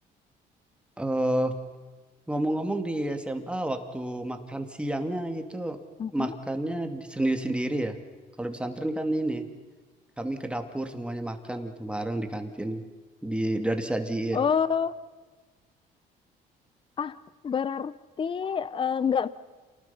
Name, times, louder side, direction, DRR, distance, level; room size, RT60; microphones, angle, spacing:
voice 1, 1.0-1.5 2.3-5.8 6.1-8.0 8.4-9.5 10.2-12.8 13.2-14.4, right 1 dB, 5° right, 6 dB, 2.4 m, -30 dB
voice 2, 6.0-6.4 14.3-14.9 17.0-17.2 17.4-17.9 18.2-19.3, left 7 dB, 30° left, 17 dB, 0.8 m, -27 dB
28.5 x 19.0 x 5.7 m, 1.4 s
cardioid pair, 110°, 17 cm